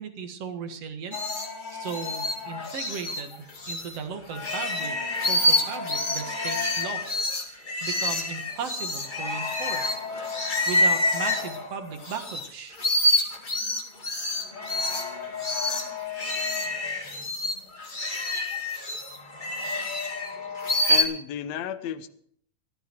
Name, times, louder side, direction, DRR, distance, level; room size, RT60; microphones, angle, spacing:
voice 1, 0.0-5.0 5.3-12.8, right 6 dB, 55° right, 6 dB, 2.2 m, -37 dB
sound 1, 1.1-4.0 4.3-12.5 12.7-21.0, left 2 dB, 25° left, 1.0 m, -27 dB
voice 2, 20.9-22.1, left 9 dB, 75° left, 9 dB, 1.6 m, -32 dB
15.0 x 13.5 x 4.6 m, 0.64 s
omnidirectional pair, 4.2 m